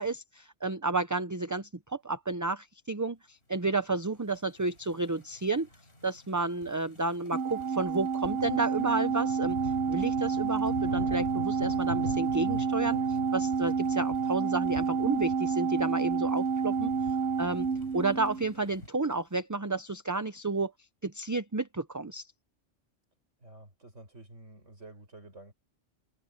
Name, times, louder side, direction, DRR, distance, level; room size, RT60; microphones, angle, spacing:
voice 1, 0.0-5.7 6.0-16.9 17.4-17.7 17.9-20.7 21.0-22.3, right 3 dB, 20° right, 0.6 m, -31 dB
sound 1, 4.6-18.9, left 1 dB, 60° left, 5.0 m, -43 dB
Organ, 7.3-18.6, right 5 dB, 55° right, 1.1 m, -29 dB
voice 2, 23.4-25.5, right 2 dB, 80° right, 6.6 m, -50 dB
omnidirectional pair, 1.2 m